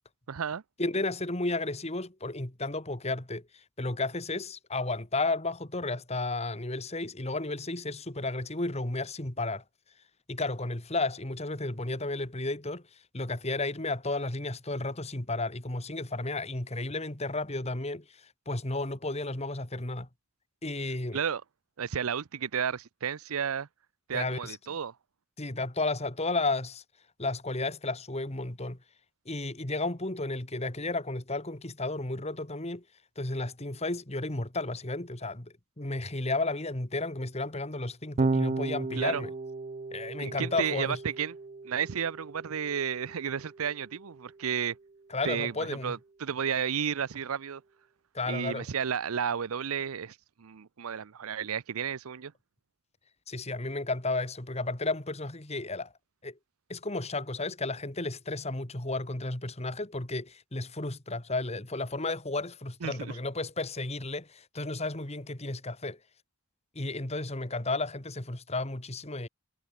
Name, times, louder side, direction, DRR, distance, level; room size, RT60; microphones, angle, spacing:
voice 1, 0.3-0.6 21.1-21.4 21.8-23.7 24.1-24.9 39.0-39.2 40.2-41.3 41.6-44.8 45.2-47.6 48.3-52.3 62.8-63.1, right 7 dB, 90° right, 0.6 m, -32 dB
voice 2, 0.8-9.6 10.3-12.8 13.1-20.1 20.6-21.2 24.1-24.6 25.4-26.8 27.2-28.8 29.3-32.8 33.2-39.3 39.9-41.0 45.1-46.0 48.1-48.7 53.3-55.9 56.2-56.4 56.7-66.0 66.8-69.3, left 2 dB, 30° left, 2.1 m, -33 dB
Electric guitar / Bass guitar, 38.2-44.6, right 3 dB, 35° right, 0.4 m, -35 dB
head